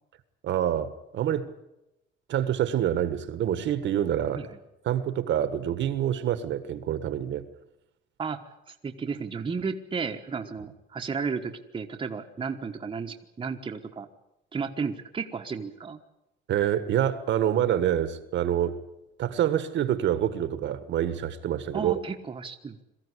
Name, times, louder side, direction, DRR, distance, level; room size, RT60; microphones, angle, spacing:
voice 1, 0.4-1.5 2.3-4.5 4.8-7.4 16.5-18.8 19.2-21.9, right 10 dB, 65° right, 1.5 m, -26 dB
voice 2, 8.7-14.1 14.5-16.0 21.7-22.8, right 5 dB, 25° right, 1.3 m, -33 dB
22.5 x 15.0 x 9.9 m
cardioid pair, 155°, 21 cm